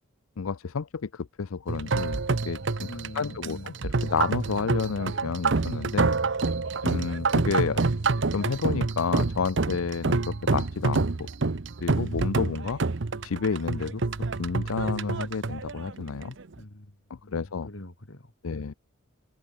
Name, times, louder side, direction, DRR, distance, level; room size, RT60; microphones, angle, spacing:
voice 1, 0.4-2.2 2.5-2.9 3.1-6.1 6.8-7.8 8.3-11.3 11.8-12.8 13.2-14.0 14.4-16.3 17.1-17.7 18.4-18.7, left 5 dB, 85° left, 0.6 m, -30 dB
sound 1, 1.7-16.5, right 3 dB, 60° right, 0.8 m, -27 dB
voice 2, 2.8-3.7 16.6-16.9 17.2-18.6, left 1 dB, 65° left, 2.4 m, -44 dB
open air
head